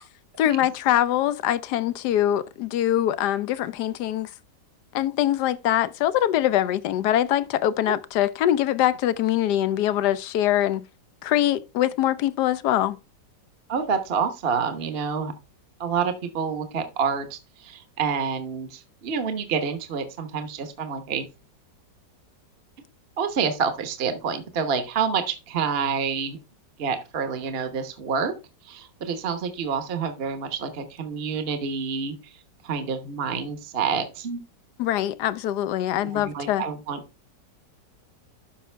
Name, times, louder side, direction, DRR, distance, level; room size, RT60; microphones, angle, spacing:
voice 1, 0.4-4.3 4.9-10.9 11.2-13.0 34.8-36.7, left 12 dB, 75° left, 1.1 m, -23 dB
voice 2, 13.7-15.3 15.8-21.2 23.2-26.4 26.8-28.3 28.6-32.1 32.6-34.4 36.0-37.0, right 6 dB, 40° right, 1.1 m, -28 dB
12.0 x 5.5 x 3.3 m
omnidirectional pair, 1.9 m